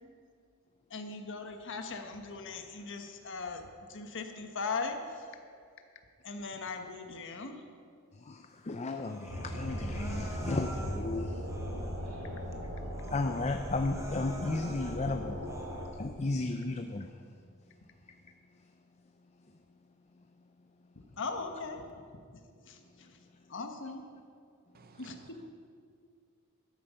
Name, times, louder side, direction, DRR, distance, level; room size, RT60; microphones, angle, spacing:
voice 1, 0.9-5.3 6.2-7.6 21.2-21.9 22.6-23.2 23.5-24.0 25.0-25.4, left 4 dB, 60° left, 1.3 m, -39 dB
voice 2, 8.2-11.4 13.1-15.4 16.0-17.1, left 2 dB, 30° left, 0.5 m, -34 dB
Human voice, 9.0-11.1 11.4-12.1 12.5-12.6 12.9-15.0 15.4-16.0, right 1 dB, 15° right, 1.3 m, -49 dB
sound 1, 9.3-15.9, equal, 80° right, 3.5 m, -38 dB
voice 3, 24.7-25.5, right 4 dB, 45° right, 0.8 m, -58 dB
13.0 x 13.0 x 5.7 m
head